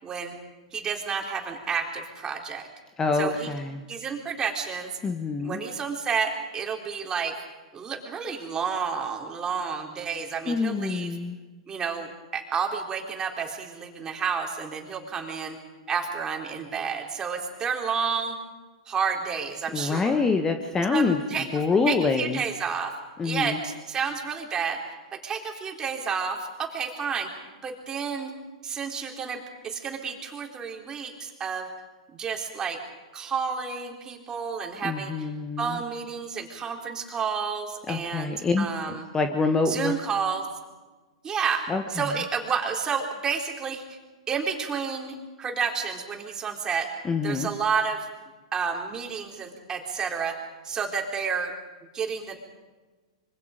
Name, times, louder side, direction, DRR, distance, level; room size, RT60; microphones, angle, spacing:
voice 1, 0.0-0.4 0.7-2.7 3.2-3.5 3.9-5.0 5.4-7.3 7.7-11.1 11.7-15.6 15.9-18.4 18.9-20.1 20.9-21.0 21.3-22.9 23.2-24.8 25.1-27.3 27.6-28.3 28.6-31.7 32.1-32.8 33.1-35.3 35.6-39.1 39.7-40.5 41.2-44.0 44.3-46.9 47.2-48.1 48.5-50.4 50.6-51.5 51.9-52.4, right 6 dB, 20° right, 2 dB, 4.0 m, -30 dB
voice 2, 3.0-3.8 5.0-5.6 10.5-11.4 19.7-22.4 23.2-23.6 34.8-35.8 37.9-39.9 41.7-42.1 47.0-47.5, left 4 dB, 20° left, 7 dB, 1.5 m, -26 dB
26.5 x 24.5 x 5.2 m, 1.3 s
hypercardioid pair, 115°, 3 cm